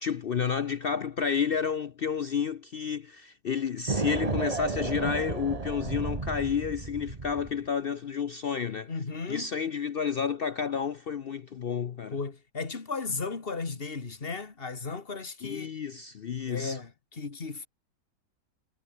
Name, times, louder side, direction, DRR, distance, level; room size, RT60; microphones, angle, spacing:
voice 1, 0.0-8.9 9.3-12.2 15.4-16.8, left 7 dB, 65° left, 0.5 m, -30 dB
sound 1, 3.9-7.6, right 3 dB, 25° right, 1.5 m, -32 dB
voice 2, 8.9-9.5 12.1-15.7 16.5-17.7, left 4 dB, 35° left, 2.2 m, -35 dB
omnidirectional pair, 1.7 m